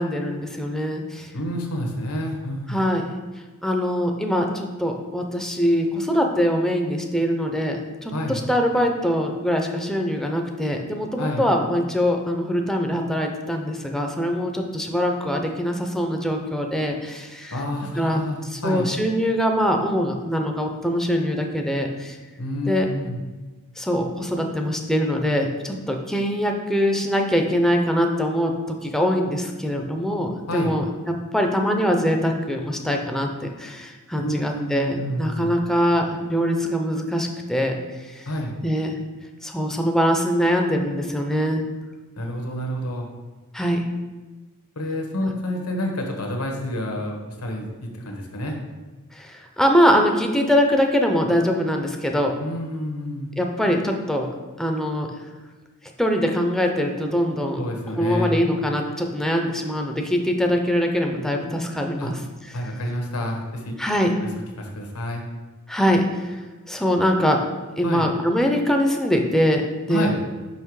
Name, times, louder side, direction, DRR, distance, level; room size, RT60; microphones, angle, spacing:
voice 1, 0.0-1.3 2.7-3.0 3.6-17.6 18.0-22.2 22.7-22.9 23.8-28.5 28.8-37.8 38.0-38.2 38.6-38.9 39.4-41.6 43.5-43.8 45.2-45.3 49.1-52.4 53.4-54.3 54.6-55.1 56.0-57.6 58.0-62.6 63.8-64.2 65.7-66.4 66.7-67.4 67.8-69.6 69.9-70.1, equal, ahead, 2 dB, 0.6 m, -23 dB
voice 2, 1.3-2.8 8.1-8.4 11.2-11.4 17.5-18.9 22.4-23.2 30.5-30.8 34.2-35.5 38.3-38.6 42.2-43.1 44.8-48.5 52.4-53.3 57.6-58.5 62.0-62.1 62.5-63.7 64.6-65.2 67.8-68.1 69.9-70.2, equal, 80° left, 2 dB, 1.2 m, -28 dB
5.6 x 5.4 x 4.7 m, 1.3 s
head